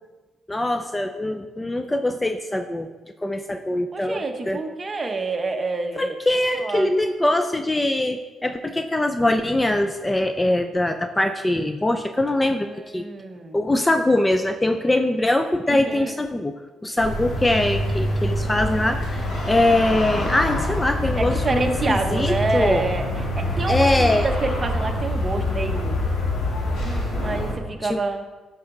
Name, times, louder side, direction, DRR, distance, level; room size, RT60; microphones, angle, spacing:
voice 1, 0.5-2.9 3.2-4.6 6.0-12.7 12.9-13.1 13.5-16.6 16.8-22.9 23.7-24.3 27.8-28.0, left 1 dB, 15° left, 8 dB, 0.5 m, -22 dB
voice 2, 3.9-6.1 6.6-6.9 12.6-13.6 15.7-16.1 21.2-26.0 26.7-28.2, right 3 dB, 30° right, 4 dB, 1.1 m, -28 dB
sound 1, 17.0-27.5, left 1 dB, 70° left, 2.5 m, -25 dB
11.0 x 5.9 x 3.9 m, 1.2 s
cardioid pair, 90°, 0 cm